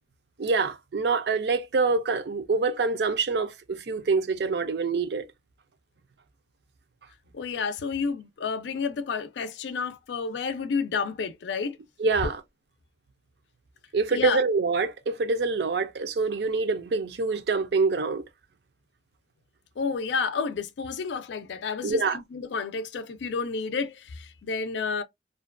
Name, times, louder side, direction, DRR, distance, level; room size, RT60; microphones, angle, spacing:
voice 1, 0.4-5.3 12.0-12.4 13.9-18.2 21.8-22.2, right 4 dB, 65° right, 0.5 m, -25 dB
voice 2, 7.3-11.8 14.1-14.4 19.8-25.0, left 5 dB, 80° left, 0.4 m, -30 dB
2.4 x 2.2 x 2.4 m
head